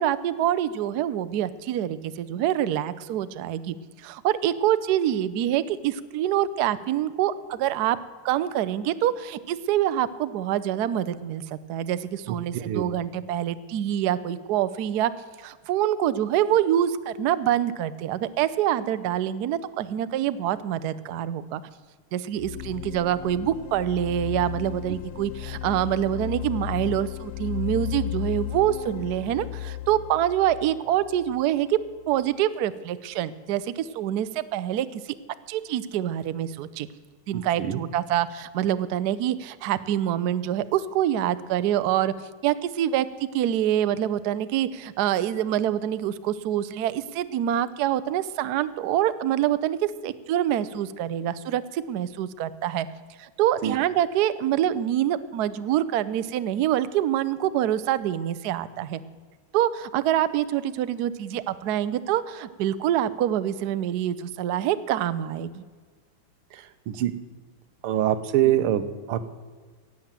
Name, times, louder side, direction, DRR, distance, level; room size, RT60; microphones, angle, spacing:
voice 1, 0.0-3.8 4.0-8.0 8.2-11.4 11.7-15.1 15.4-21.6 22.1-31.8 32.1-35.0 35.5-36.9 37.3-42.1 42.4-52.9 53.2-59.0 59.5-65.6 68.4-68.6, right 11 dB, 75° right, 14 dB, 0.9 m, -26 dB
sound 1, 22.4-32.2, left 14 dB, 80° left, 1.5 m, -35 dB
voice 2, 37.3-37.8 53.6-53.7 66.5-67.1 67.8-69.3, right 12 dB, 90° right, 12 dB, 1.8 m, -25 dB
18.0 x 7.4 x 7.4 m, 1.5 s
omnidirectional pair, 2.4 m